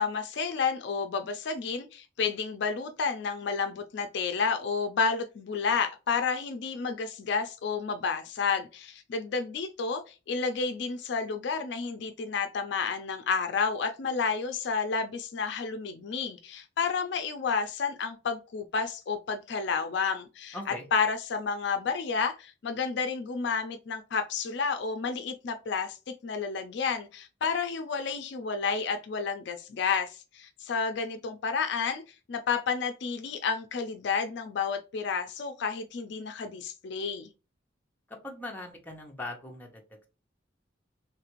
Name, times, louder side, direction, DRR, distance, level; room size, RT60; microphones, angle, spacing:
voice 1, 0.0-26.0 26.2-32.0 32.3-37.3, left 5 dB, 65° left, 0.4 m, -31 dB
voice 2, 20.5-20.9 38.1-40.1, left 2 dB, 10° left, 0.7 m, -40 dB
3.2 x 2.5 x 2.9 m
head